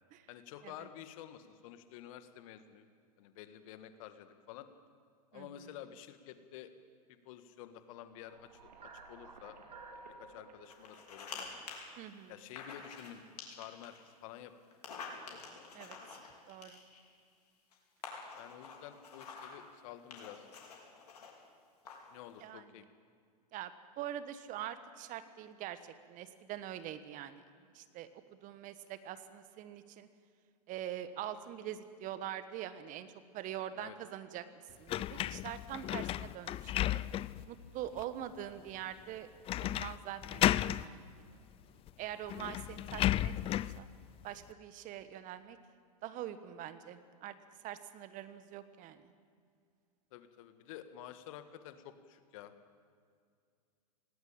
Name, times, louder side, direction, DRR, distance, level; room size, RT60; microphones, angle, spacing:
voice 1, 0.3-2.8 3.2-4.7 5.3-6.7 7.3-8.7 9.1-9.6 9.9-11.6 12.3-14.5 15.0-15.1 18.3-20.5 22.1-22.9 33.7-34.0 50.1-52.5, left 11 dB, 55° left, 10 dB, 1.7 m, -50 dB
voice 2, 5.3-5.6 12.0-12.4 15.7-16.0 16.5-16.8 22.4-22.6 23.5-27.4 27.7-30.1 30.7-34.4 34.8-37.0 37.5-40.4 40.7-41.3 42.0-43.9 44.2-45.6 46.0-47.4 47.6-49.1, right 11 dB, 40° right, 12 dB, 1.4 m, -44 dB
sound 1, 8.1-12.4, right 3 dB, 90° right, 2.6 m, -54 dB
sound 2, 10.7-11.4 11.7-11.8 12.6-13.1 13.4-14.0 14.7-17.1 17.7-17.8 18.0-19.6 20.1-21.3 21.8-22.1, left 5 dB, 75° left, 4.8 m, -47 dB
sound 3, 34.9-37.5 38.0-38.1 39.5-40.0 40.2-40.9 41.9-42.0 42.3-43.8, left 13 dB, 30° left, 0.4 m, -33 dB
18.5 x 18.0 x 8.8 m, 2.2 s
hypercardioid pair, 100°, 20 cm